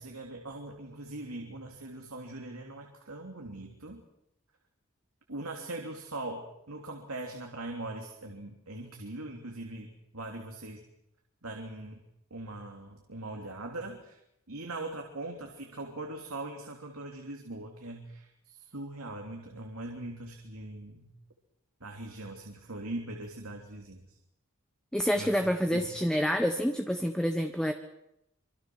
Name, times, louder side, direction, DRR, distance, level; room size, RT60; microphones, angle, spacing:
voice 1, 0.0-4.0 5.3-10.8 11.4-12.0 12.3-14.2 14.5-21.1 21.8-24.2 25.1-25.8, right 2 dB, 80° right, 1 dB, 3.1 m, -41 dB
voice 2, 24.9-27.7, equal, 5° left, 5 dB, 1.3 m, -28 dB
26.0 x 25.0 x 6.3 m, 0.80 s
head